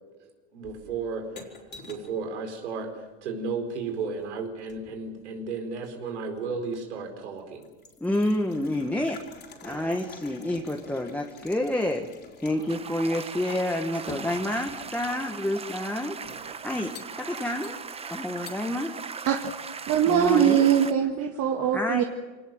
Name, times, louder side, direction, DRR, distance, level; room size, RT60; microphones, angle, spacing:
voice 1, 0.5-1.3 1.8-7.7 9.6-10.0 12.4-12.7 15.1-15.3 16.3-16.6, right 4 dB, 90° right, 5 dB, 4.6 m, -34 dB
sound 1, 0.6-2.2 3.7-5.1 5.8-6.5 7.0-7.1 7.4-13.0 13.2-13.3 14.1-15.1 15.9-16.5 16.9-17.2 17.6-18.1 18.5-18.6, left 4 dB, 30° left, 4.2 m, -47 dB
voice 2, 8.0-9.2 9.6-12.1 12.4-16.2 16.6-17.8 18.1-19.0 20.1-20.7 21.7-22.0, left 1 dB, 5° left, 2 dB, 1.6 m, -28 dB
sound 2, 12.7-20.9, right 5 dB, 15° right, 1.1 m, -39 dB
voice 3, 19.9-22.0, right 9 dB, 45° right, 4 dB, 1.8 m, -22 dB
24.0 x 19.0 x 7.7 m, 1.3 s
supercardioid pair, 115°, 34 cm